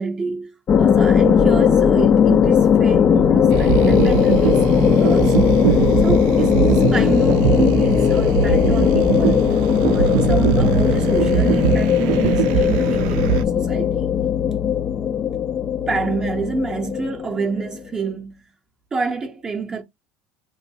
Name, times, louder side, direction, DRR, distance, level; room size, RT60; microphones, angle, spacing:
voice 1, 0.0-4.6 5.0-5.7 6.0-9.4 9.9-14.1 15.9-18.4 18.9-19.8, right 4 dB, 15° right, 0.6 m, -27 dB
sound 1, 0.7-17.8, left 8 dB, 25° left, 0.3 m, -18 dB
sound 2, 3.5-13.4, right 11 dB, 85° right, 0.4 m, -22 dB
4.5 x 3.0 x 2.7 m
cardioid pair, 160°, 4 cm